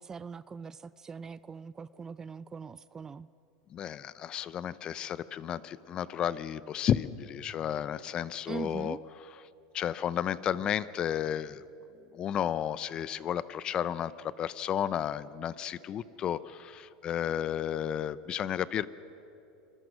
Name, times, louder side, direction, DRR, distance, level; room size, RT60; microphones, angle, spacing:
voice 1, 0.0-3.3 8.5-9.0, right 6 dB, 20° right, 17 dB, 0.4 m, -41 dB
voice 2, 3.7-9.0 9.7-11.7 12.1-18.9, left 9 dB, 35° left, 17 dB, 0.6 m, -32 dB
26.5 x 20.0 x 6.3 m, 3.0 s
supercardioid pair, 135°, 3 cm